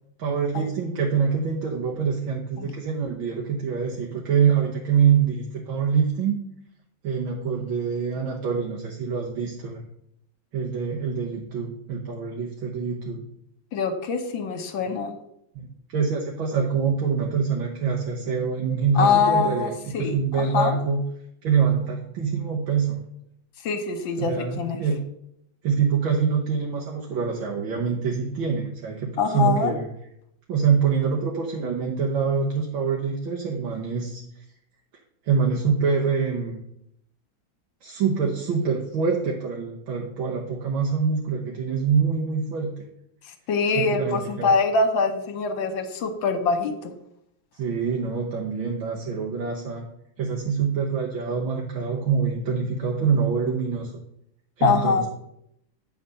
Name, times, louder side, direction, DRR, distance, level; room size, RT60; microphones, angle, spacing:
voice 1, 0.2-6.4 7.0-9.8 10.5-13.2 15.6-21.0 21.4-23.0 24.2-25.0 25.6-29.9 30.5-34.2 35.3-36.6 37.8-42.7 43.8-44.5 47.5-49.9 50.2-53.9 54.6-55.1, right 6 dB, 80° right, -2 dB, 1.8 m, -25 dB
voice 2, 13.7-15.1 19.0-20.8 23.6-24.8 29.2-29.7 43.5-46.9 54.6-55.1, left 4 dB, 75° left, 7 dB, 1.6 m, -24 dB
9.3 x 4.2 x 6.5 m, 0.76 s
omnidirectional pair, 2.2 m